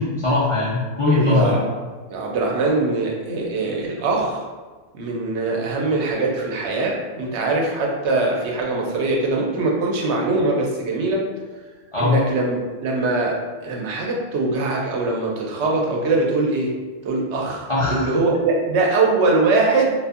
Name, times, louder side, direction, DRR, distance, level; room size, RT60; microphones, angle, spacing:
voice 1, 0.0-1.6 11.9-12.2 17.7-18.1, left 3 dB, 45° left, -8 dB, 0.5 m, -20 dB
voice 2, 1.1-1.7 2.1-4.4 4.9-11.2 12.0-16.7 17.0-19.9, right 3 dB, 85° right, -1 dB, 0.9 m, -22 dB
2.5 x 2.4 x 2.4 m, 1.3 s
omnidirectional pair, 1.1 m